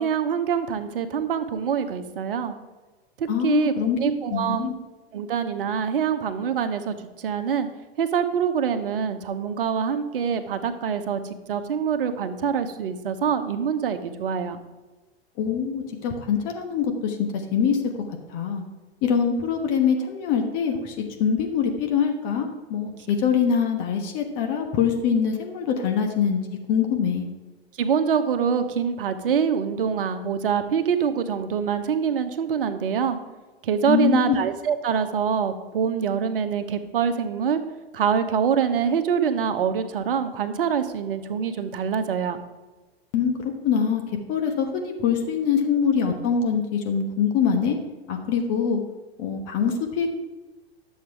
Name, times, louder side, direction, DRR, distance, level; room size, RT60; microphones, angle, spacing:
voice 1, 0.0-2.5 3.2-4.7 5.1-7.7 8.0-11.2 11.5-14.6 27.8-33.2 33.6-37.6 37.9-42.4, right 7 dB, 60° right, 9 dB, 1.1 m, -25 dB
voice 2, 3.3-4.0 4.3-4.7 15.4-17.2 17.5-17.8 18.3-18.6 19.0-20.9 21.2-26.4 26.7-27.3 33.9-34.4 43.1-43.3 43.6-44.0 44.3-47.8 48.1-48.8 49.2-50.1, left 7 dB, 35° left, 3 dB, 1.3 m, -23 dB
11.0 x 7.4 x 4.7 m, 1.2 s
figure-of-eight pair, 95°, 31 cm